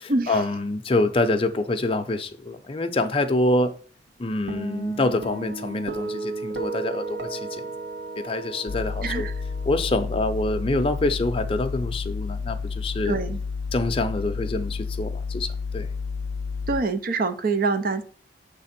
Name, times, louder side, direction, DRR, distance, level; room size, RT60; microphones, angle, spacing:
voice 1, 0.0-3.7 4.2-7.7 8.2-9.3 9.7-13.2 13.7-15.5 15.7-15.9, left 2 dB, 30° left, 0.6 m, -26 dB
Guitar, 4.5-11.0, right 3 dB, 70° right, 1.2 m, -35 dB
sound 1, 8.7-16.8, left 5 dB, 80° left, 0.4 m, -31 dB
voice 2, 13.1-13.4 16.7-18.0, right 3 dB, 50° right, 0.6 m, -25 dB
6.7 x 3.5 x 5.8 m
head